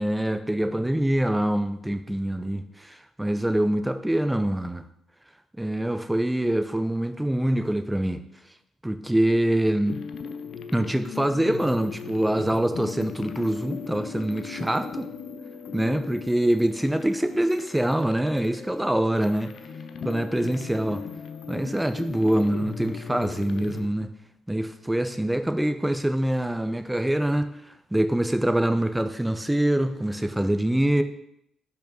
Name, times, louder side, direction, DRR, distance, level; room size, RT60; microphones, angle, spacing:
voice 1, 0.0-4.8 5.6-8.2 8.8-10.0 10.7-15.1 15.7-19.5 20.0-21.0 21.5-24.1 24.5-27.6 27.9-31.0, right 1 dB, 5° right, 8 dB, 0.6 m, -25 dB
sound 1, 9.9-23.9, left 6 dB, 60° left, 0.5 m, -38 dB
5.2 x 4.6 x 6.1 m, 0.76 s
cardioid pair, 90°, 0 cm